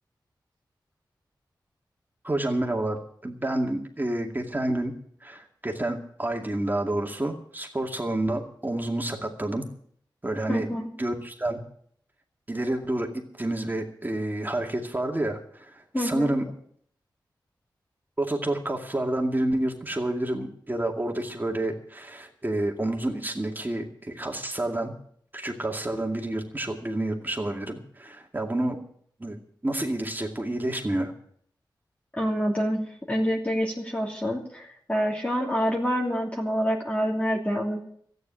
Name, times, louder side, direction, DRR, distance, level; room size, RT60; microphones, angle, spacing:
voice 1, 2.2-4.9 5.2-9.6 10.2-10.7 11.0-11.6 12.5-16.4 18.2-24.9 25.3-28.8 29.2-29.4 29.6-31.1, right 1 dB, 25° right, 2 dB, 2.3 m, -29 dB
voice 2, 10.5-10.9 15.9-16.3 32.1-32.8 33.1-37.8, equal, 15° left, -1 dB, 2.9 m, -27 dB
13.5 x 9.5 x 8.7 m, 0.64 s
cardioid pair, 50°, 8 cm